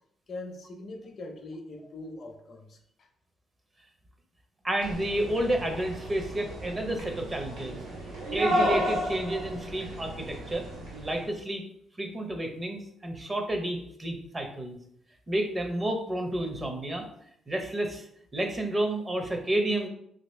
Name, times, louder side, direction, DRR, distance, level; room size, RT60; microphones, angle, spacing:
voice 1, 0.3-3.1, left 2 dB, 50° left, 4 dB, 0.5 m, -42 dB
voice 2, 4.6-7.8 8.3-11.7 12.0-14.8 15.3-17.1 17.5-18.1 18.3-19.9, right 1 dB, 25° right, 3 dB, 0.6 m, -30 dB
sound 1, 4.8-11.3, equal, 85° right, 1.3 m, -33 dB
2.9 x 2.7 x 3.1 m, 0.71 s
cardioid pair, 90°, 0 cm